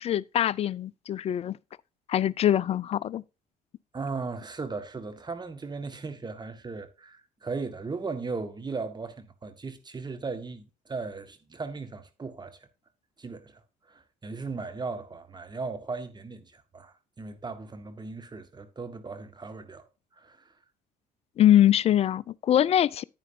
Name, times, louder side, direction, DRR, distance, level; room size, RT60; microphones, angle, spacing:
voice 1, 0.0-1.6 2.1-3.2 21.4-23.0, left 11 dB, 30° left, 0.3 m, -23 dB
voice 2, 3.9-12.7 13.2-13.6 13.9-19.9 20.2-20.4, right 4 dB, 20° right, 1.5 m, -37 dB
9.7 x 9.5 x 2.6 m
figure-of-eight pair, 50°, 21 cm